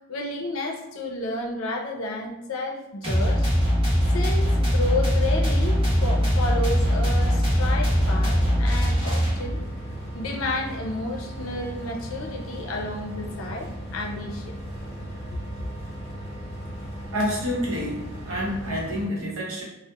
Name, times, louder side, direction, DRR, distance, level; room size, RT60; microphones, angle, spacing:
voice 1, 0.0-3.5 4.1-9.6 10.1-14.5 15.3-15.7, left 2 dB, 85° left, 2 dB, 0.4 m, -31 dB
sound 1, 3.0-9.7, equal, 30° right, 0.8 m, -21 dB
sound 2, 5.7-19.1, equal, 30° left, 0.8 m, -36 dB
voice 2, 17.1-19.6, equal, 85° right, -4 dB, 0.8 m, -28 dB
2.8 x 2.0 x 2.2 m, 0.90 s
head